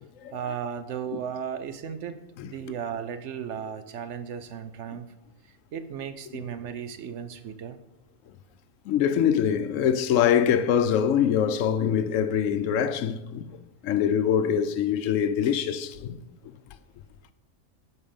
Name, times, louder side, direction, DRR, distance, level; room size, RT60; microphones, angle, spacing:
voice 1, 0.3-5.1 5.7-7.8, right 8 dB, 65° right, 0.8 m, -35 dB
voice 2, 8.9-13.4 13.8-16.2, left 8 dB, 75° left, 0.9 m, -24 dB
8.8 x 4.3 x 6.9 m
omnidirectional pair, 1.4 m